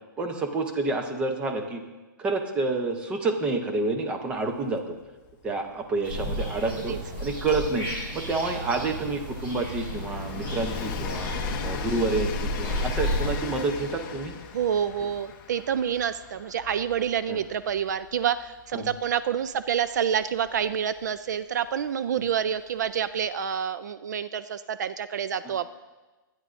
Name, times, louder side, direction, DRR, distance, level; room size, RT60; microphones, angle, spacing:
voice 1, 0.2-1.8 2.2-5.0 5.4-7.9 8.1-11.3 11.6-14.3 15.0-15.1 17.3-17.4 18.7-18.9 25.4-25.5, right 3 dB, 10° right, 5 dB, 0.6 m, -28 dB
Train, 4.4-4.5 4.7-21.3 22.3-22.4, left 7 dB, 25° left, 0.7 m, -39 dB
sound 1, 6.0-13.4, equal, 35° right, 4.6 m, -32 dB
voice 2, 14.5-25.7, right 8 dB, 55° right, 14 dB, 0.4 m, -28 dB
23.0 x 9.6 x 2.5 m, 1.2 s
hypercardioid pair, 170°, 11 cm